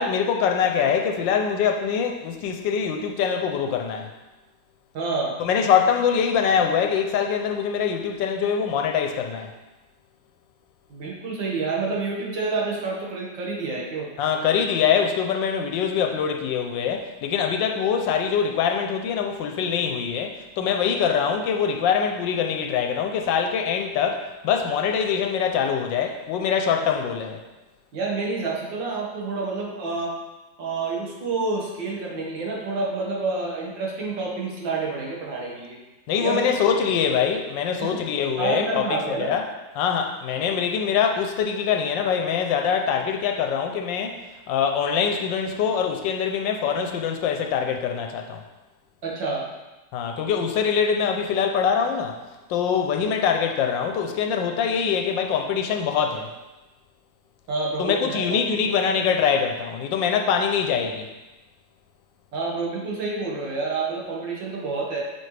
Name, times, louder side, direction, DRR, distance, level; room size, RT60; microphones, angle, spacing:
voice 1, 0.0-4.1 5.4-9.5 14.2-27.4 36.1-39.4 39.7-44.2 44.5-48.4 49.9-52.2 52.5-56.3 57.8-61.1, left 7 dB, 85° left, 4 dB, 1.4 m, -24 dB
voice 2, 4.9-5.4 10.9-14.1 27.9-30.1 30.6-35.8 36.2-36.5 37.8-38.0 38.4-39.3 49.0-49.4 57.5-58.5 58.8-58.9 62.3-65.0, right 3 dB, 90° right, -3 dB, 2.3 m, -28 dB
8.6 x 6.8 x 3.3 m, 1.1 s
omnidirectional pair, 2.0 m